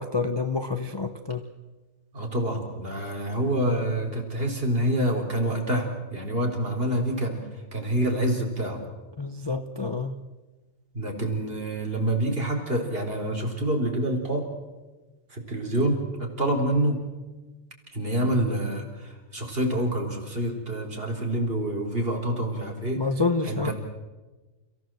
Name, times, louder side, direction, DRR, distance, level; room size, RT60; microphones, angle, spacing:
voice 1, 0.0-1.4 9.2-10.2 23.0-23.7, left 4 dB, 20° left, 7 dB, 0.8 m, -28 dB
voice 2, 2.1-7.4 7.7-8.8 10.9-14.5 15.3-17.0 17.9-23.0 23.4-23.7, right 1 dB, 45° right, 1 dB, 4.5 m, -27 dB
29.5 x 16.0 x 7.8 m, 1.2 s
omnidirectional pair, 1.4 m